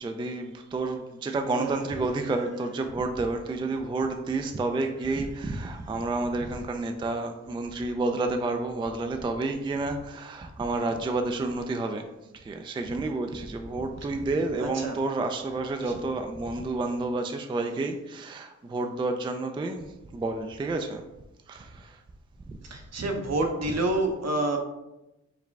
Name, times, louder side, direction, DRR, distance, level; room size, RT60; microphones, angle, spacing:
voice 1, 0.0-12.0 12.3-19.9 20.1-21.0 21.5-22.0 23.6-23.7, right 2 dB, 15° right, 5 dB, 0.3 m, -30 dB
voice 2, 1.5-1.8 14.6-15.0 15.8-15.9 22.7-24.6, right 2 dB, 55° right, 3 dB, 0.7 m, -28 dB
4.8 x 2.1 x 3.3 m, 0.96 s
cardioid pair, 55°, 31 cm